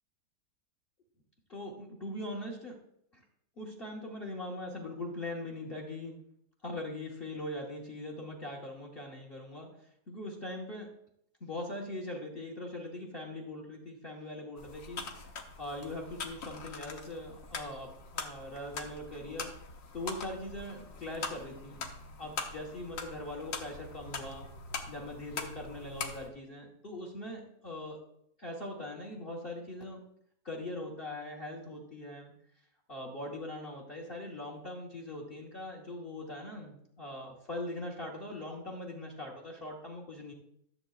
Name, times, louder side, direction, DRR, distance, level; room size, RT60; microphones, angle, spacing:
voice 1, 1.5-2.8 3.1-3.2 3.6-6.2 6.6-9.7 10.1-10.9 11.4-15.0 15.6-19.5 19.9-21.9 22.2-24.4 24.9-28.0 28.4-30.1 30.4-32.3 32.9-40.3, left 1 dB, 35° left, 0 dB, 1.4 m, -41 dB
sound 1, 14.6-26.3, left 4 dB, 55° left, 1.3 m, -43 dB
13.5 x 7.8 x 2.4 m, 0.72 s
omnidirectional pair, 1.9 m